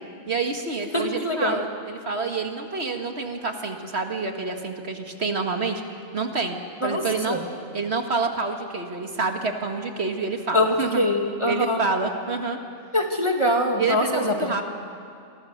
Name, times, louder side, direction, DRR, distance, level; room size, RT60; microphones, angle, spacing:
voice 1, 0.3-5.8 6.1-6.6 6.8-7.4 7.7-11.0 11.5-12.6 13.8-14.6, right 4 dB, 60° right, 4 dB, 2.0 m, -27 dB
voice 2, 0.9-1.6 6.8-7.0 7.3-7.5 10.5-11.8 12.9-14.6, left 1 dB, 25° left, 2 dB, 2.2 m, -23 dB
28.0 x 24.5 x 6.6 m, 2.4 s
omnidirectional pair, 1.3 m